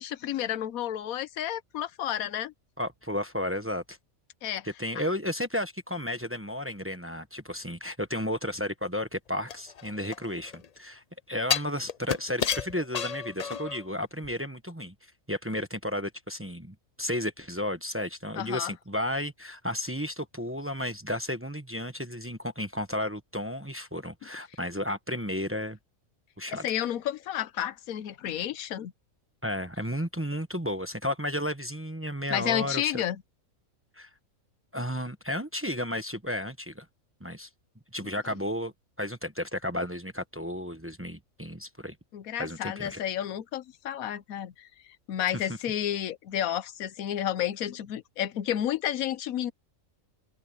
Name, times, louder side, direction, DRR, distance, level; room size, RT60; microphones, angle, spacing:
voice 1, 0.0-2.5 4.4-4.7 18.4-18.7 26.5-28.9 32.3-33.2 42.1-44.7 45.1-49.5, left 11 dB, 85° left, 1.2 m, -31 dB
voice 2, 2.8-4.0 4.6-14.9 15.3-25.8 26.4-26.6 29.4-33.0 34.0-34.1 34.7-36.8 37.2-37.5 37.9-38.7 39.0-41.9 42.4-43.0 45.3-45.5, left 1 dB, 10° right, 1.0 m, -33 dB
sound 1, 9.5-10.7 11.5-13.9 14.2-14.3, left 7 dB, 55° left, 0.4 m, -31 dB
omnidirectional pair, 1.5 m